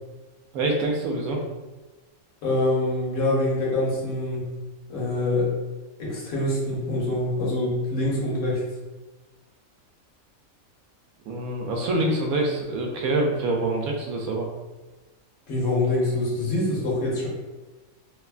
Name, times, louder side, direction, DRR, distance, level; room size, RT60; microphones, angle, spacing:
voice 1, 0.5-1.4 11.3-14.5, right 2 dB, 90° right, 0 dB, 1.1 m, -25 dB
voice 2, 2.4-4.5 4.9-5.5 6.0-8.7 15.5-17.3, left 2 dB, 75° left, -5 dB, 1.3 m, -25 dB
3.1 x 2.2 x 2.3 m, 1.2 s
omnidirectional pair, 1.5 m